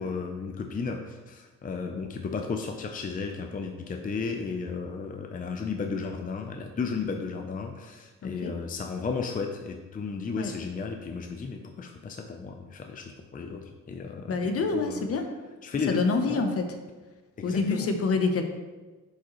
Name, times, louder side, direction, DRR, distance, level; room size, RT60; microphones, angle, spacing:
voice 1, 0.0-15.0 15.6-16.5 17.4-17.9, left 5 dB, 30° left, 4 dB, 0.6 m, -34 dB
voice 2, 8.2-8.5 10.4-10.5 14.3-15.3 15.9-16.8 17.4-18.4, left 4 dB, 50° left, 6 dB, 0.9 m, -27 dB
8.1 x 5.0 x 3.1 m, 1.3 s
cardioid pair, 90°, 30 cm